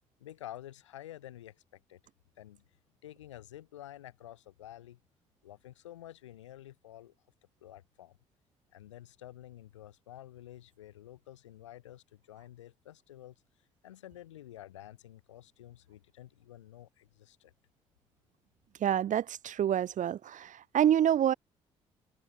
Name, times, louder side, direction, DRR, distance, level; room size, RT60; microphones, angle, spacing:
voice 1, 0.2-2.0 2.4-2.6 3.0-5.0 5.4-7.1 7.6-8.2 8.7-13.3 13.8-17.5, left 13 dB, 90° left, 8.0 m, -50 dB
voice 2, 18.8-21.3, right 10 dB, 55° right, 1.3 m, -27 dB
hypercardioid pair, 45°, 15 cm